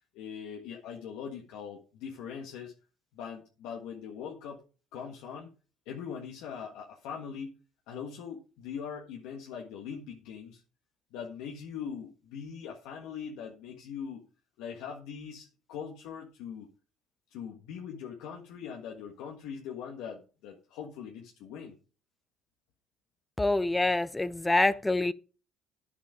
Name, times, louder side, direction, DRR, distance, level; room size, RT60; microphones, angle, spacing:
voice 1, 0.1-2.7 3.1-4.6 4.9-5.5 5.8-7.5 7.9-10.6 11.1-14.2 14.6-16.7 17.3-21.7, left 7 dB, 80° left, 1.5 m, -41 dB
voice 2, 23.4-25.1, left 2 dB, 10° left, 0.7 m, -26 dB
9.9 x 7.2 x 5.0 m
supercardioid pair, 85°, 0 cm